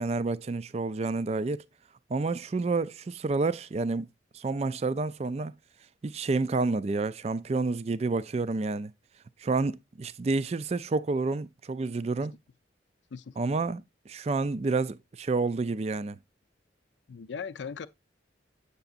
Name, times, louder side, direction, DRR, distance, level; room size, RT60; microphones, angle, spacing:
voice 1, 0.0-1.6 2.1-4.1 4.3-5.5 6.0-8.9 9.4-12.3 13.4-16.2, right 3 dB, 35° right, 0.3 m, -29 dB
voice 2, 17.1-17.9, left 6 dB, 75° left, 0.5 m, -38 dB
8.1 x 6.8 x 2.5 m
head